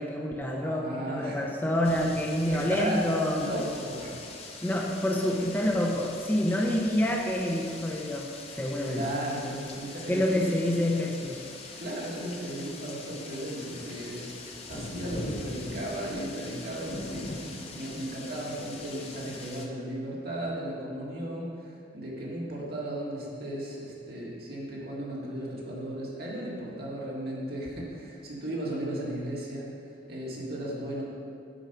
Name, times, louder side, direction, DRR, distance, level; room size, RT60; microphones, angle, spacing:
voice 1, 0.0-3.5 4.6-9.2 10.1-11.5, left 1 dB, 10° left, 0 dB, 0.5 m, -27 dB
voice 2, 0.5-1.4 2.5-4.1 8.8-10.5 11.8-14.3 14.7-29.7 30.1-31.0, right 1 dB, 55° right, -5 dB, 2.0 m, -35 dB
sound 1, 1.8-19.7, left 2 dB, 35° left, 0.8 m, -42 dB
8.8 x 5.2 x 5.5 m, 2.4 s
head